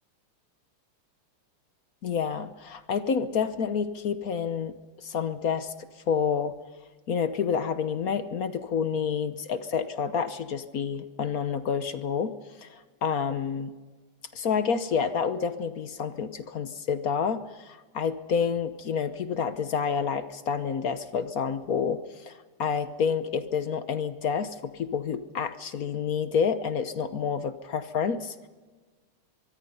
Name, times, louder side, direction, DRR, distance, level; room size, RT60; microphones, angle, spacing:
voice 1, 2.0-4.7 5.0-5.7 6.1-6.5 7.1-12.3 12.6-13.7 14.3-22.3 22.6-28.5, left 6 dB, 55° left, 11 dB, 1.1 m, -29 dB
23.5 x 23.5 x 5.6 m, 1.4 s
omnidirectional pair, 2.4 m